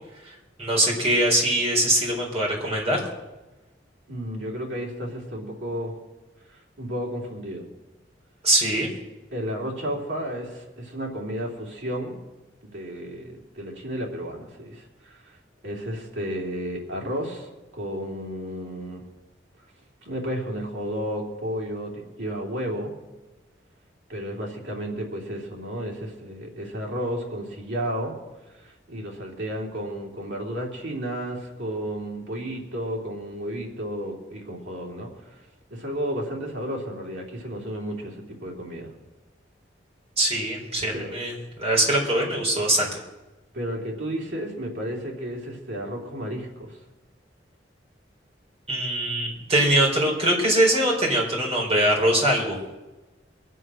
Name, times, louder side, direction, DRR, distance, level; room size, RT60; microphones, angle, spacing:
voice 1, 0.2-3.0 8.4-8.9 40.2-41.3 41.6-42.9 48.7-52.6, right 1 dB, 35° right, -1 dB, 4.3 m, -22 dB
voice 2, 4.1-5.9 6.5-7.6 9.3-12.2 12.6-15.4 15.6-19.0 20.0-22.9 24.1-28.2 28.5-35.4 35.7-38.9 40.9-41.1 43.5-46.8, equal, 80° right, -2 dB, 3.2 m, -32 dB
23.0 x 7.7 x 6.3 m, 1.1 s
head